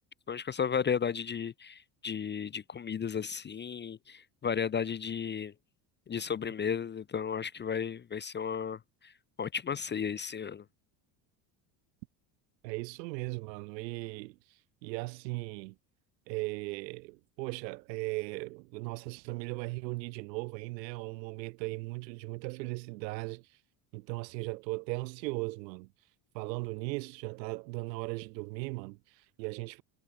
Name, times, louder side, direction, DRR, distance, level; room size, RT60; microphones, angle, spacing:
voice 1, 0.3-5.5 6.1-9.1 9.4-10.6, left 7 dB, 20° left, 0.6 m, -34 dB
voice 2, 12.6-15.8 16.3-23.6 23.9-25.9 26.3-29.8, right 24 dB, 80° right, 4.4 m, -38 dB
supercardioid pair, 95°, 49 cm